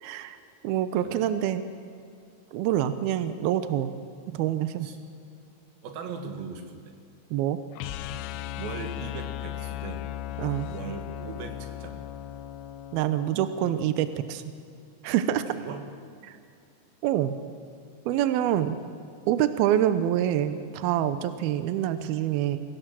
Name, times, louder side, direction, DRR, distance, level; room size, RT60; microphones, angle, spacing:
voice 1, 0.0-0.4 0.6-1.6 2.5-3.9 4.3-4.9 7.3-7.6 10.4-10.7 12.9-14.4 15.0-15.4 16.3-16.4 17.0-17.3 18.1-18.8 19.3-22.6, right 11 dB, 85° right, 11 dB, 2.2 m, -26 dB
voice 2, 5.8-6.9 8.6-10.1 10.7-12.1 15.5-15.9, right 5 dB, 60° right, 5 dB, 3.1 m, -39 dB
sound 1, 7.7-13.8, left 12 dB, 80° left, 2.8 m, -37 dB
25.0 x 17.0 x 7.6 m, 2.4 s
omnidirectional pair, 5.4 m